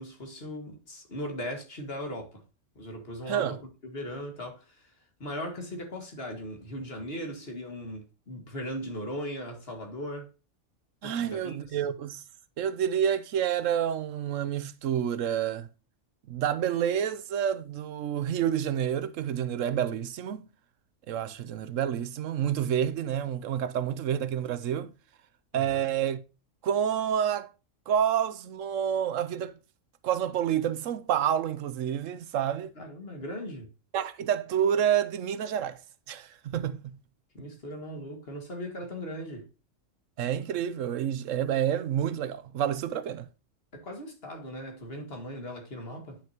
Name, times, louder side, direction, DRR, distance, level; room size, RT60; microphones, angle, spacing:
voice 1, 0.0-2.4 2.8-4.9 5.2-10.3 11.0-11.8 25.5-25.8 32.8-33.7 37.3-39.5 43.7-46.2, equal, 50° left, 2.1 m, -38 dB
voice 2, 3.3-3.6 11.0-12.2 12.6-15.7 16.3-20.4 21.1-24.9 25.5-26.2 26.6-27.5 27.9-29.5 30.0-32.7 33.9-35.8 36.1-36.8 40.2-43.3, right 9 dB, 80° right, 1.0 m, -28 dB
9.9 x 6.2 x 2.9 m
omnidirectional pair, 1.3 m